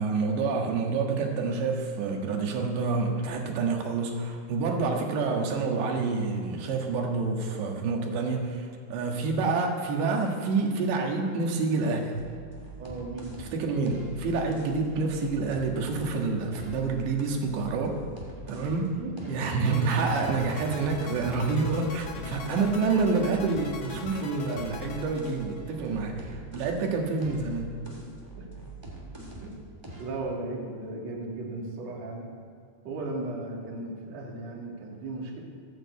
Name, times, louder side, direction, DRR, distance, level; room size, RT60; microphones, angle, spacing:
voice 1, 0.0-12.3 13.4-18.0 18.5-19.0 19.3-27.7, right 4 dB, 70° right, 1 dB, 3.6 m, -28 dB
sound 1, 12.2-16.1 16.5-18.9 19.2-26.9 27.2-29.6 29.8-30.2, right 1 dB, 10° right, 1.3 m, -43 dB
voice 2, 12.8-13.3 19.0-19.5 19.9-20.1 22.1-22.5 25.8-26.4 28.3-28.5 29.4-29.5 30.0-32.3 32.8-35.4, right 2 dB, 40° right, -3 dB, 3.0 m, -37 dB
sound 2, 19.6-25.9, left 5 dB, 80° left, 1.6 m, -43 dB
14.0 x 9.2 x 8.2 m, 2.4 s
omnidirectional pair, 5.6 m